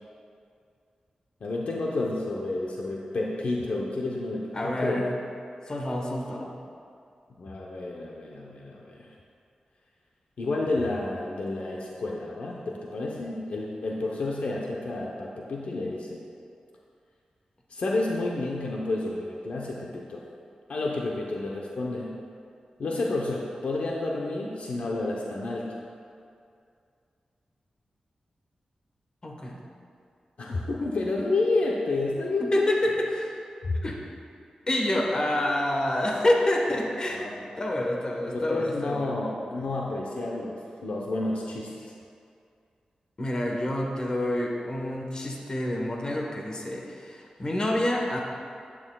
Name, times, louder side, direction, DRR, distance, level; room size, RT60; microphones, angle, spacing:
voice 1, 1.4-5.1 7.4-9.1 10.4-16.2 17.7-20.2 20.7-22.2 22.8-25.8 30.4-32.9 33.6-33.8 37.1-37.4 38.3-41.9, left 2 dB, 70° left, -2 dB, 0.8 m, -30 dB
voice 2, 4.5-5.1 5.7-6.5 29.2-29.6 32.5-33.1 33.8-34.0 34.7-37.3 37.6-39.1 43.2-48.2, left 1 dB, 35° left, -1 dB, 1.2 m, -27 dB
11.0 x 8.9 x 2.3 m, 2.4 s
wide cardioid pair, 100°, 2 cm